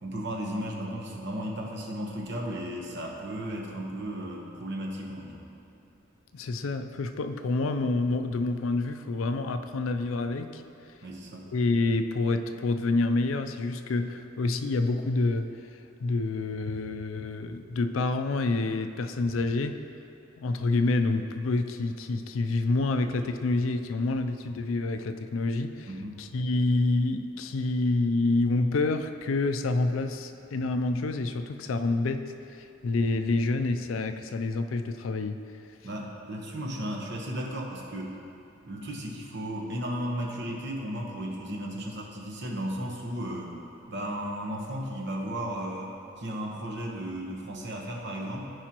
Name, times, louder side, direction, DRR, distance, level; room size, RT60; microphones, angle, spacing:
voice 1, 0.0-5.4 11.0-11.5 25.9-26.2 35.8-38.2 38.6-43.5 43.9-48.5, equal, 60° right, -1 dB, 1.1 m, -35 dB
voice 2, 6.3-10.6 11.5-19.8 20.4-25.9 26.2-35.4, left 2 dB, 85° left, 8 dB, 0.4 m, -28 dB
14.5 x 4.9 x 3.0 m, 2.7 s
head